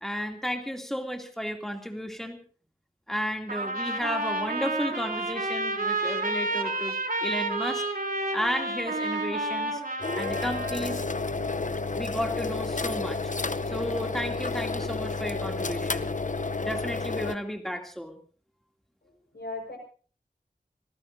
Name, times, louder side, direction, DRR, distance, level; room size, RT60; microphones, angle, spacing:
voice 1, 0.0-2.4 3.1-7.8 8.3-9.8 10.2-11.0 11.9-13.3 13.7-16.1 16.6-18.2, equal, ahead, 3 dB, 2.6 m, -33 dB
Trumpet, 3.5-10.9, right 2 dB, 65° right, 3.5 m, -30 dB
sound 1, 10.0-17.3, left 3 dB, 50° left, 0.7 m, -31 dB
voice 2, 19.0-19.8, left 2 dB, 85° left, 3 dB, 5.3 m, -38 dB
27.5 x 18.5 x 2.7 m, 0.41 s
wide cardioid pair, 55°, 16 cm